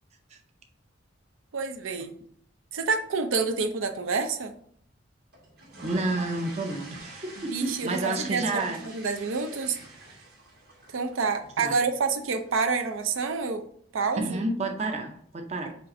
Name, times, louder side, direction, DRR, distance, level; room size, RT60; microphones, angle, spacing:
voice 1, 1.5-2.1 2.7-4.5 7.5-9.8 10.9-13.6 13.9-14.4, right 4 dB, 85° right, 7 dB, 0.5 m, -28 dB
sound 1, 5.3-13.4, right 2 dB, 50° right, 1.3 m, -47 dB
voice 2, 5.8-8.8 11.6-11.8 14.2-15.8, right 2 dB, 35° right, 4 dB, 0.5 m, -30 dB
5.1 x 2.5 x 4.1 m, 0.62 s
head